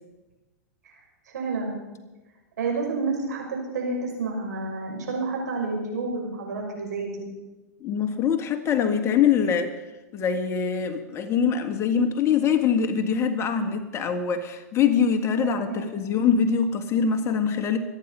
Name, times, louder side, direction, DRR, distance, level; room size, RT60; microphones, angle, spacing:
voice 1, 1.3-1.7 2.6-7.1 15.4-15.9, right 3 dB, 80° right, 0 dB, 6.1 m, -29 dB
voice 2, 7.8-9.8 10.1-17.8, left 7 dB, 30° left, 6 dB, 1.8 m, -23 dB
24.5 x 9.8 x 5.6 m, 1.1 s
hypercardioid pair, 115°, 9 cm